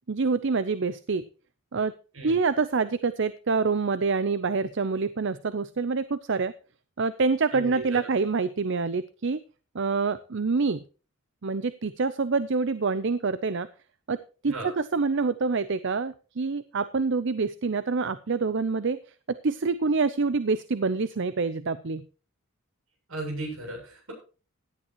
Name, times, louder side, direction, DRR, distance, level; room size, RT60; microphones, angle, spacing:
voice 1, 0.1-1.2 1.7-1.9 2.2-6.5 7.0-9.4 9.7-10.8 11.4-13.7 14.1-19.0 19.3-22.0, right 4 dB, 60° right, 14 dB, 0.6 m, -26 dB
voice 2, 7.5-7.8 14.5-14.7 23.1-24.1, right 2 dB, 80° right, 2 dB, 7.9 m, -36 dB
17.0 x 11.5 x 3.0 m, 0.35 s
head